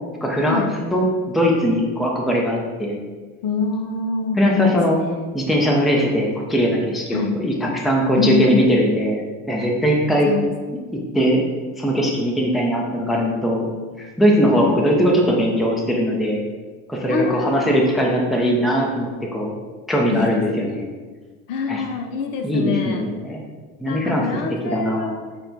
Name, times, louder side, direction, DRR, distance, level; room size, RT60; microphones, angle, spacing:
voice 1, 0.2-3.0 4.4-5.0 5.3-9.2 9.5-10.3 10.9-11.4 11.8-13.7 14.0-16.4 16.9-19.5 19.9-20.9 21.7-21.8 22.4-23.4 23.8-24.3 24.6-25.1, equal, ahead, -1 dB, 0.5 m, -20 dB
voice 2, 3.4-5.1 7.1-7.4 8.1-8.7 10.3-10.5 14.5-14.8 17.1-17.8 20.1-20.3 21.5-23.1 23.9-25.2, left 4 dB, 55° left, 4 dB, 0.6 m, -25 dB
5.8 x 2.2 x 3.9 m, 1.4 s
supercardioid pair, 110°, 40 cm